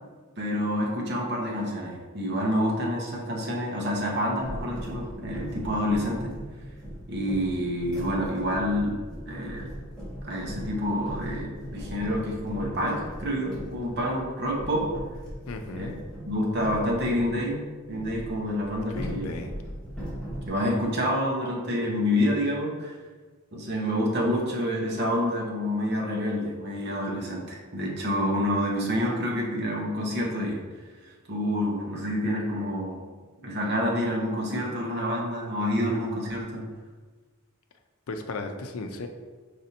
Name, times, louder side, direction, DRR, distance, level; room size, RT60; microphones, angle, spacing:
voice 1, 0.4-6.3 7.1-9.7 10.2-14.9 15.7-15.9 16.3-19.3 20.5-22.9 23.5-30.7 31.3-33.0 33.4-36.7, equal, 50° right, -2 dB, 0.9 m, -28 dB
sound 1, 4.4-17.4 17.9-20.5, equal, 5° left, 1.3 m, -38 dB
voice 2, 15.5-16.0 18.9-19.5 38.1-39.1, left 3 dB, 80° left, 6 dB, 0.5 m, -35 dB
5.2 x 3.3 x 2.8 m, 1.4 s
head